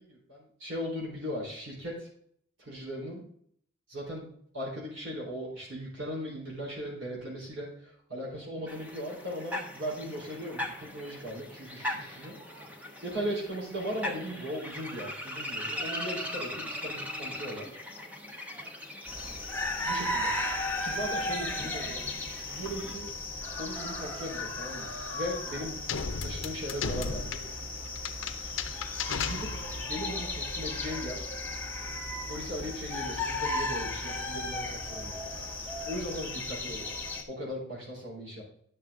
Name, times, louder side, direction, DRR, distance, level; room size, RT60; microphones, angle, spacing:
voice 1, 0.1-2.1 2.6-3.2 3.9-4.3 4.5-12.3 13.0-17.7 19.8-20.3 20.8-22.0 22.5-23.1 23.6-25.8 26.2-27.4 29.2-29.5 29.8-31.3 32.3-35.2 35.9-37.0 37.3-38.4, equal, 70° right, -4 dB, 4.0 m, -38 dB
sound 1, 8.7-22.9, left 1 dB, 10° right, 1.2 m, -40 dB
sound 2, 19.1-37.2, left 2 dB, 10° left, 1.5 m, -35 dB
sound 3, 25.9-30.0, left 6 dB, 75° left, 0.6 m, -35 dB
11.0 x 6.6 x 3.7 m, 0.64 s
head